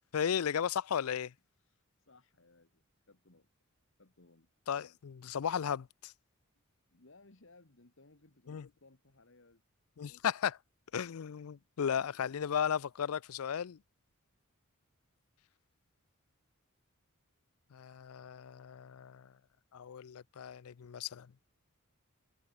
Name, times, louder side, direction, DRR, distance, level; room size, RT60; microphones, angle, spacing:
voice 1, 0.1-1.3 4.7-6.1 8.5-8.7 10.0-10.6 10.9-13.8 17.7-19.3 19.7-21.3, left 8 dB, 80° left, 0.4 m, -35 dB
voice 2, 1.6-3.5 4.0-4.5 6.9-9.6 11.5-12.4, left 2 dB, 60° left, 1.8 m, -63 dB
head